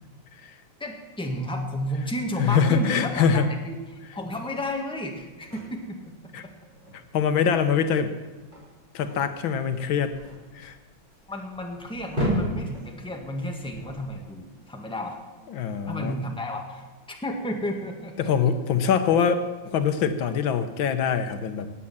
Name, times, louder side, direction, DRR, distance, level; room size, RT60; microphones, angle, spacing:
voice 1, 0.8-6.0 11.3-15.2 15.9-18.3, equal, 5° left, 2 dB, 1.6 m, -32 dB
sound 1, 1.7-14.7, equal, 20° right, 6.1 m, -36 dB
voice 2, 2.4-3.5 6.3-6.4 6.9-8.1 8.9-10.2 10.5-10.8 15.5-16.2 18.2-21.7, left 7 dB, 80° left, 9 dB, 1.7 m, -24 dB
17.5 x 8.7 x 7.3 m, 1.2 s
omnidirectional pair, 2.2 m